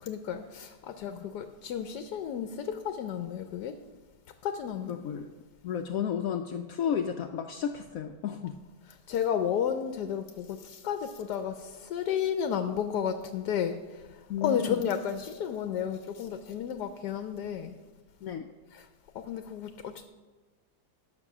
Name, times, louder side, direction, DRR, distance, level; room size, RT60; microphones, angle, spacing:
voice 1, 0.0-3.7 4.4-4.9 9.1-14.0 14.4-17.7 18.7-18.8 19.1-20.0, left 8 dB, 85° left, 8 dB, 1.3 m, -32 dB
voice 2, 4.9-5.3 5.6-8.5 14.3-14.8 18.2-18.5, left 8 dB, 70° left, 6 dB, 0.9 m, -32 dB
12.0 x 7.0 x 6.0 m, 1.3 s
omnidirectional pair, 1.7 m